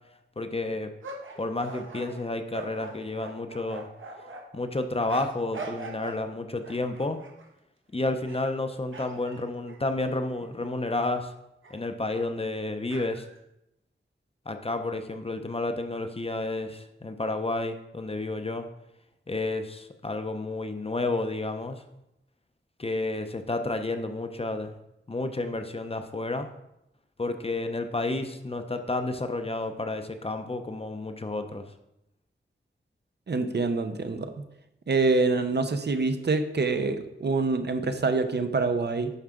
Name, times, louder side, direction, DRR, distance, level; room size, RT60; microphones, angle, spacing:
voice 1, 0.4-0.9 1.4-3.9 4.5-7.2 7.9-11.3 11.7-13.3 14.5-18.7 19.3-21.8 22.8-24.8 25.1-26.5 27.2-31.7, left 2 dB, 30° left, 7 dB, 0.6 m, -31 dB
sound 1, 1.0-4.4 5.1-6.2 6.6-7.5 8.1-8.6 8.9-10.5 11.0-11.1 11.6-11.8 12.9-13.4, right 3 dB, 75° right, 1.2 m, -42 dB
voice 2, 33.3-34.3 34.9-39.1, right 3 dB, 55° right, 8 dB, 0.7 m, -26 dB
11.0 x 4.6 x 3.7 m, 0.86 s
wide cardioid pair, 105°, 20 cm